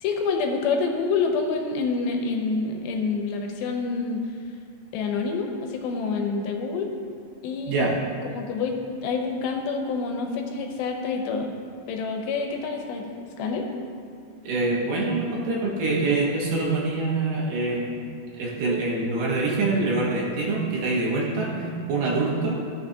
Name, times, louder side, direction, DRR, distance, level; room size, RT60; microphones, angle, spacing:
voice 1, 0.0-4.2 4.9-6.9 7.4-7.9 8.2-11.6 11.9-13.7, left 4 dB, 80° left, 3 dB, 2.5 m, -27 dB
voice 2, 14.4-18.1 18.3-22.6, right 3 dB, 70° right, -3 dB, 2.5 m, -25 dB
13.5 x 6.3 x 2.7 m, 2.3 s
omnidirectional pair, 4.4 m